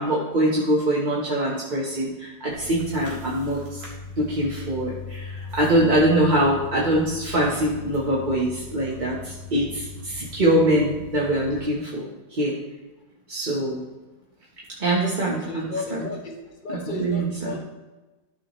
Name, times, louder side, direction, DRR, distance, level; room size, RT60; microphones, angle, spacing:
voice 1, 0.0-3.8 4.2-12.6 13.3-13.8 14.8-16.1 16.7-17.6, right 1 dB, 30° right, -4 dB, 1.1 m, -23 dB
sound 1, 2.5-11.6, left 4 dB, 60° right, 2.3 m, -39 dB
voice 2, 15.5-17.6, left 2 dB, 35° left, 1 dB, 1.1 m, -33 dB
13.5 x 5.7 x 3.1 m, 1.1 s
omnidirectional pair, 1.9 m